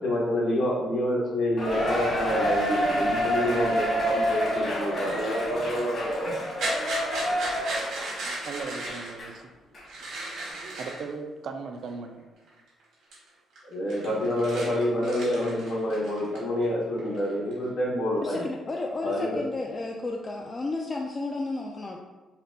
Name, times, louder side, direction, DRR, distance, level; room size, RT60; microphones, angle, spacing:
voice 1, 0.0-6.4 13.6-18.5 19.0-19.4, left 1 dB, 60° left, -4 dB, 1.0 m, -28 dB
Cheering, 1.6-9.3 9.7-9.8 10.5-10.6, equal, 45° left, 1.3 m, -28 dB
sound 1, 6.5-9.1 9.8-11.1 11.9-12.0 12.5-12.8 13.1-13.3 13.5-16.6 17.0-17.7, right 2 dB, 85° right, 1.4 m, -36 dB
voice 2, 8.1-9.5 10.5-12.2, right 4 dB, 65° right, 5 dB, 0.4 m, -38 dB
voice 3, 18.2-22.0, left 2 dB, 30° left, 0 dB, 0.3 m, -32 dB
4.1 x 2.1 x 2.6 m, 1.3 s
cardioid pair, 90°, 0 cm